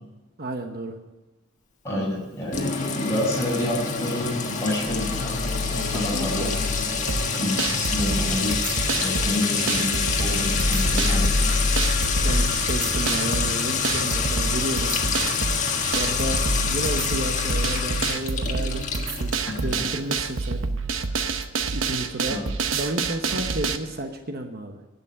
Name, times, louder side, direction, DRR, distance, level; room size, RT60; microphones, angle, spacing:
voice 1, 0.4-0.9 5.7-6.5 12.2-15.0 15.9-19.3 19.6-20.6 21.0-21.4 21.7-22.4 22.7-24.8, right 1 dB, 50° right, 5 dB, 1.0 m, -32 dB
voice 2, 1.8-6.5 7.4-8.6 9.0-11.5 19.4-19.7 22.3-22.4, left 1 dB, 15° left, -4 dB, 5.8 m, -29 dB
Sink (filling or washing) / Trickle dribble / Fill (with liquid), 2.5-20.0, left 5 dB, 40° left, 1.5 m, -27 dB
sound 1, 4.8-6.9 10.4-12.5 15.9-18.0, left 2 dB, 30° right, 4.6 m, -28 dB
sound 2, 7.1-23.8, right 4 dB, 85° right, 0.9 m, -28 dB
11.0 x 8.4 x 9.8 m, 1.1 s
head